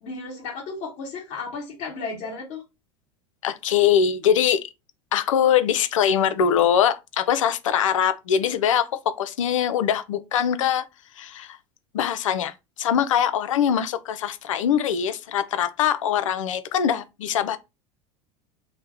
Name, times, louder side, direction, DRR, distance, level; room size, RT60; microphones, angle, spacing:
voice 1, 0.0-2.6, left 4 dB, 60° left, 1.1 m, -34 dB
voice 2, 3.4-4.6 5.1-8.9 9.2-10.8 11.2-11.6 11.9-17.6, left 9 dB, 80° left, 0.4 m, -22 dB
2.8 x 2.1 x 3.4 m
hypercardioid pair, 80°, 16 cm